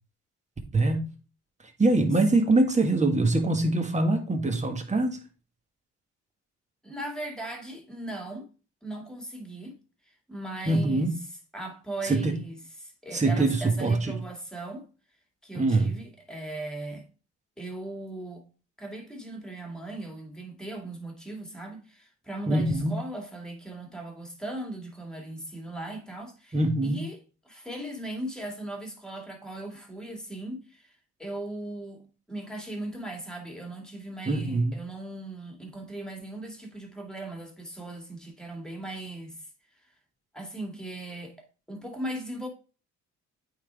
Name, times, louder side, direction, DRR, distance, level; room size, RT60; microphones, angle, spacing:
voice 1, 0.7-1.1 1.8-5.2 10.6-11.1 12.0-12.3 13.1-14.2 15.5-15.9 22.5-22.9 26.5-27.1 34.2-34.8, right 2 dB, 25° right, 1.6 m, -24 dB
voice 2, 6.8-8.5 8.8-9.8 10.3-11.1 11.5-14.9 15.4-17.1 17.6-18.5 18.8-26.6 26.8-27.2 27.5-30.9 31.2-39.4 40.3-41.4 41.7-42.5, right 1 dB, ahead, 2.3 m, -38 dB
8.8 x 4.0 x 3.5 m
cardioid pair, 90°, 30 cm